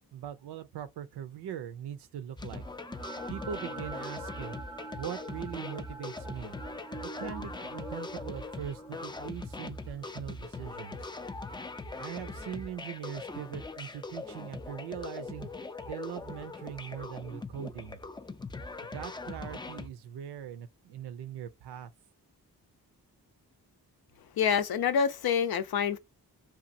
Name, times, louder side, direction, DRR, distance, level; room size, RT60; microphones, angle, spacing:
voice 1, 0.1-2.6 3.3-4.6 5.0-6.6 7.0-11.1 12.0-15.5 15.8-18.0 18.9-21.9, right 9 dB, 85° right, 0.5 m, -41 dB
sound 1, 2.4-19.9, left 3 dB, 15° left, 0.3 m, -41 dB
sound 2, 2.5-12.7, right 4 dB, 15° right, 0.7 m, -47 dB
voice 2, 24.4-26.0, left 7 dB, 65° left, 0.6 m, -27 dB
2.9 x 2.4 x 2.5 m
cardioid pair, 45°, 39 cm